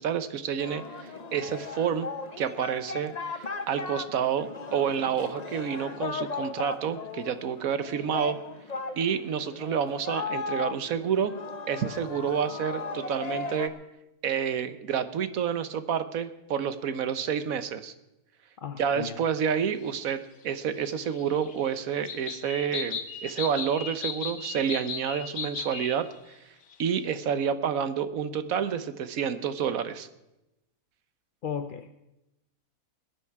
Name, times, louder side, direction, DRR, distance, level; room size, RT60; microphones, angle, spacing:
voice 1, 0.0-2.1 2.4-8.4 9.0-11.3 11.7-13.7 14.2-17.9 18.8-26.4 26.8-30.1, right 7 dB, 70° right, 11 dB, 1.3 m, -29 dB
Singing, 0.6-13.7, left 4 dB, 35° left, 0.9 m, -37 dB
voice 2, 18.6-19.2 31.4-32.0, left 7 dB, 60° left, 9 dB, 0.5 m, -35 dB
sound 1, 20.8-26.0 26.3-26.4 26.7-26.9, left 6 dB, 85° left, 1.6 m, -37 dB
21.5 x 9.7 x 4.7 m, 0.93 s
omnidirectional pair, 1.6 m